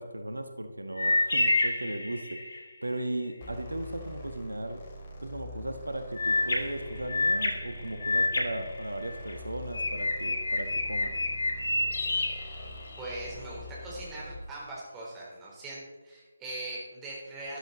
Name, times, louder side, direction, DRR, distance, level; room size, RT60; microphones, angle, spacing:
voice 1, 0.0-4.8 5.2-11.2, right 1 dB, 70° right, 7 dB, 1.3 m, -36 dB
sound 1, 1.0-2.7 6.2-9.3 9.7-13.2, left 2 dB, 50° left, 2.2 m, -29 dB
sound 2, 3.4-14.5, equal, 30° left, 2.5 m, -44 dB
voice 2, 13.0-17.6, right 2 dB, 10° right, -5 dB, 3.7 m, -40 dB
13.0 x 12.0 x 4.1 m, 1.2 s
figure-of-eight pair, 150°, 0 cm